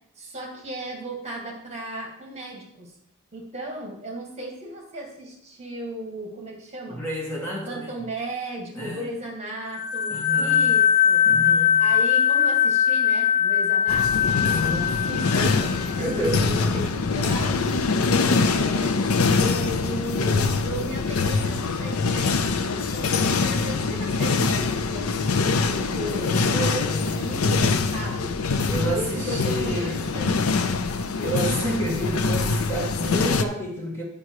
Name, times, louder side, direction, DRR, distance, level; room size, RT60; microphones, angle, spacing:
voice 1, 0.2-2.9 3.3-7.0 7.6-11.3 11.8-17.9 18.2-19.1 19.4-26.5 27.1-28.4 28.9-30.9, right 1 dB, 30° right, 0 dB, 2.0 m, -35 dB
voice 2, 6.9-7.9 8.7-9.0 10.1-10.7 11.3-11.8 14.4-15.0 16.0-16.5 26.5-27.2 28.7-30.0 31.2-34.0, right 1 dB, 10° left, -3 dB, 1.8 m, -30 dB
sound 1, 9.7-16.2, left 8 dB, 70° left, 1.2 m, -21 dB
sound 2, 13.9-33.4, left 4 dB, 90° left, 0.6 m, -24 dB
10.0 x 5.4 x 4.8 m, 0.74 s
head